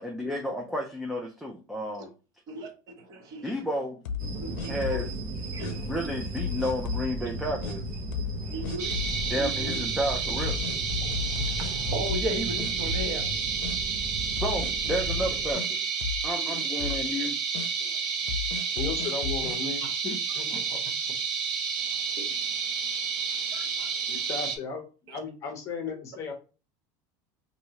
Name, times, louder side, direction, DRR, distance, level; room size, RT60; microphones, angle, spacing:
voice 1, 0.0-2.1 3.4-4.0 4.7-5.1 5.7-7.8 9.3-10.6 14.4-15.8 16.2-17.4, equal, ahead, -1 dB, 0.4 m, -31 dB
voice 2, 3.0-3.5 4.3-5.0 5.5-5.9 8.4-9.8 11.0-13.4 16.3-16.5 17.8-18.0 18.6-18.8 19.8-19.9 20.5-20.6 21.8-24.3 25.1-25.2, right 1 dB, 35° right, 3 dB, 0.9 m, -38 dB
sound 1, 4.0-5.2 5.6-5.7 6.4-7.1 7.6-7.8 8.1-8.4 8.6-9.2 9.7-9.8 10.4-12.3 12.6-13.3 13.6-13.8 14.4-15.7 16.0-16.3 16.5-17.1 17.5-17.7 18.3-19.6, left 7 dB, 80° left, 0.6 m, -34 dB
sound 2, 4.2-15.5, right 1 dB, 70° right, 1.1 m, -36 dB
sound 3, 8.8-24.6, right 6 dB, 90° right, 0.9 m, -30 dB
voice 3, 18.8-20.8 24.1-24.8 25.1-26.3, left 5 dB, 30° left, 3 dB, 0.8 m, -35 dB
4.4 x 2.7 x 2.8 m, 0.34 s
cardioid pair, 165°, 10 cm